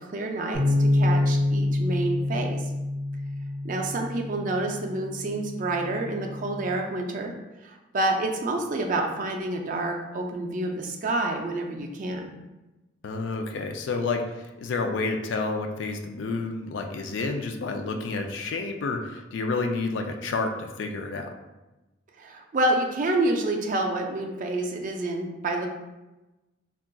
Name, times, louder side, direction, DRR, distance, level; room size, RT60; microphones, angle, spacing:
voice 1, 0.0-2.6 3.6-7.3 7.6-12.3 22.2-25.7, right 2 dB, 40° right, 2 dB, 0.3 m, -28 dB
sound 1, 0.5-6.8, left 1 dB, 85° left, 1.1 m, -27 dB
voice 2, 13.0-21.3, left 3 dB, 65° left, 4 dB, 0.3 m, -30 dB
3.7 x 2.3 x 2.2 m, 1.1 s
head